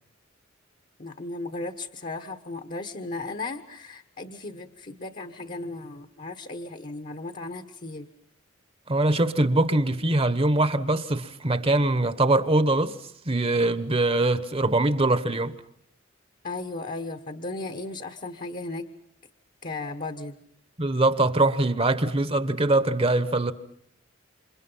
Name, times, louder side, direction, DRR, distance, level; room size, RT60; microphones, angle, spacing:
voice 1, 1.0-8.1 16.4-18.9 19.6-20.4, left 2 dB, 45° left, 1.4 m, -36 dB
voice 2, 8.9-13.0 13.2-15.6 20.8-23.5, right 2 dB, 30° right, 1.2 m, -23 dB
28.5 x 27.0 x 5.7 m
head